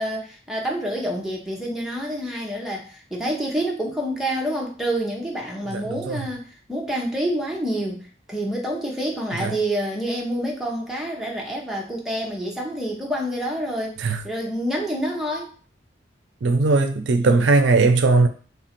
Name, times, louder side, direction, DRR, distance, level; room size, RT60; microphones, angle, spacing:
voice 1, 0.0-14.0 14.2-15.5, right 1 dB, ahead, 0.8 m, -27 dB
voice 2, 5.7-6.3 9.4-9.5 14.0-14.2 16.4-18.3, right 3 dB, 90° right, 0.5 m, -19 dB
3.3 x 2.5 x 4.3 m
head